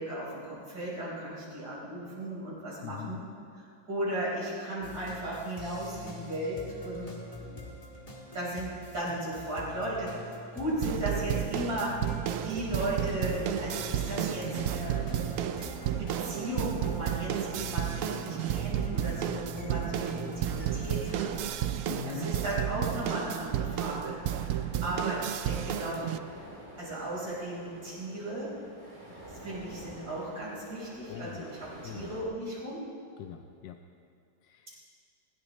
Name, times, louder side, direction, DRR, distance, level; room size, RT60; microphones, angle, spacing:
voice 1, 0.0-3.2 3.5-7.1 7.4-7.6 8.3-12.0 12.4-15.0 16.0-21.3 22.0-26.1 26.8-28.5 29.4-32.9, right 1 dB, 55° right, -7 dB, 5.3 m, -36 dB
voice 2, 2.8-3.2 21.9-22.3 31.1-31.5 31.8-32.1 33.2-33.8 34.4-34.8, left 11 dB, 80° left, 5 dB, 1.3 m, -42 dB
sound 1, 4.8-21.5, left 2 dB, 20° left, 1.6 m, -45 dB
sound 2, 10.8-26.2, right 10 dB, 80° right, 0.7 m, -32 dB
sound 3, 12.6-32.2, equal, 15° right, 3.6 m, -47 dB
20.5 x 16.5 x 3.2 m, 2.4 s
omnidirectional pair, 1.9 m